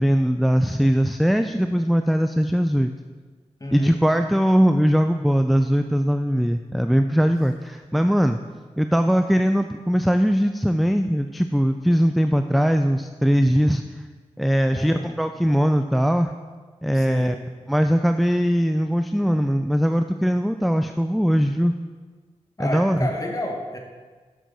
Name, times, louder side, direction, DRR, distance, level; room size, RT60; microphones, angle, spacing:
voice 1, 0.0-2.9 3.7-8.4 8.8-13.8 14.4-16.3 16.8-17.4 17.7-21.7 22.6-23.0, equal, ahead, 7 dB, 0.4 m, -20 dB
voice 2, 3.6-4.0 14.7-15.1 16.9-17.3 22.6-23.8, left 1 dB, 25° left, 1 dB, 1.7 m, -31 dB
12.5 x 6.3 x 4.1 m, 1.4 s
cardioid pair, 65°, 13 cm